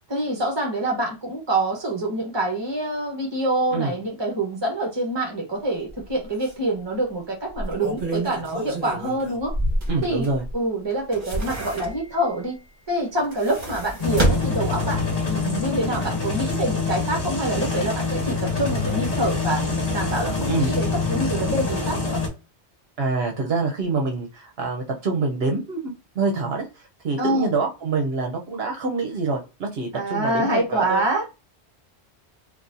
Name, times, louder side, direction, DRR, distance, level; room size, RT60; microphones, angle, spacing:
voice 1, 0.1-9.5 10.0-10.3 10.5-12.6 12.9-15.0 15.3-19.6 19.9-22.2 27.2-27.5 29.9-31.4, right 1 dB, 25° right, 1.1 m, -26 dB
sound 1, 5.9-6.0 6.4-6.5 7.5-10.5 10.9-12.3 13.1-15.2 15.6-15.7, right 2 dB, 45° right, 1.3 m, -28 dB
voice 2, 9.9-10.4 20.4-20.8 23.0-31.0, right 3 dB, 70° right, 0.9 m, -26 dB
sound 2, 14.0-22.3, left 4 dB, 35° left, 1.3 m, -25 dB
4.0 x 2.4 x 2.6 m
omnidirectional pair, 1.1 m